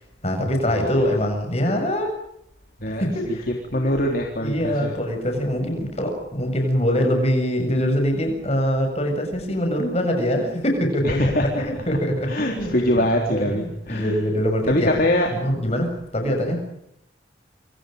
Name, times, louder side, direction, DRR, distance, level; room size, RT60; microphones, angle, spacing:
voice 1, 0.0-2.1 2.9-3.5 4.4-12.9 13.3-15.0 15.4-16.6, equal, 35° left, 4 dB, 7.3 m, -23 dB
voice 2, 2.8-4.9 11.0-11.6 12.2-14.2 14.7-15.3 15.7-15.8, left 1 dB, 50° left, 1 dB, 3.8 m, -23 dB
28.0 x 27.5 x 5.3 m, 0.79 s
head